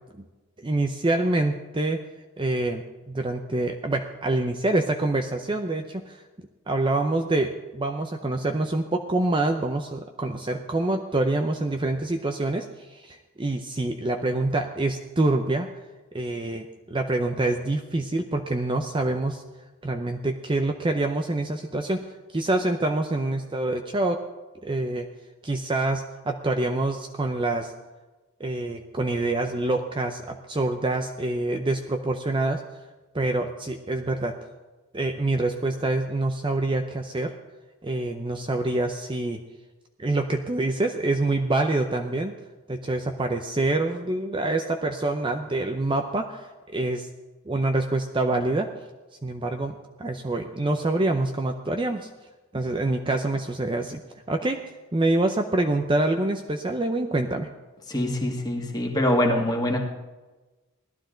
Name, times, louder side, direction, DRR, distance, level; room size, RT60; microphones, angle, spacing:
voice 1, 0.6-2.0 2.4-6.2 6.7-15.7 16.1-19.4 19.8-22.0 22.3-24.2 24.6-25.1 25.4-27.7 28.4-32.6 33.1-34.4 34.9-37.3 37.8-39.4 40.0-42.3 42.7-47.1 47.5-48.7 49.2-52.1 52.5-54.0 54.3-54.6 54.9-57.5, right 2 dB, 20° right, 5 dB, 0.6 m, -26 dB
voice 2, 57.9-59.8, left 1 dB, 20° left, 0 dB, 1.8 m, -24 dB
17.5 x 12.0 x 3.9 m, 1.2 s
head